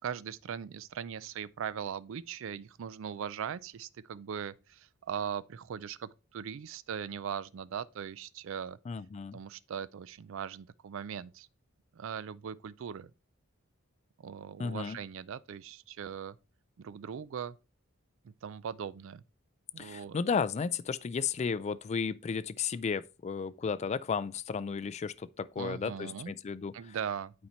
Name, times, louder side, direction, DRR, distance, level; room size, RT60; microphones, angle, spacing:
voice 1, 0.0-8.8 9.3-11.5 11.9-13.1 14.2-16.4 16.8-17.6 18.2-19.2 19.7-20.2 25.6-26.3 26.7-27.3, right 8 dB, 65° right, 0.4 m, -39 dB
voice 2, 8.9-9.4 14.6-15.0 19.8-27.0, left 5 dB, 30° left, 0.3 m, -34 dB
8.6 x 4.3 x 4.4 m
head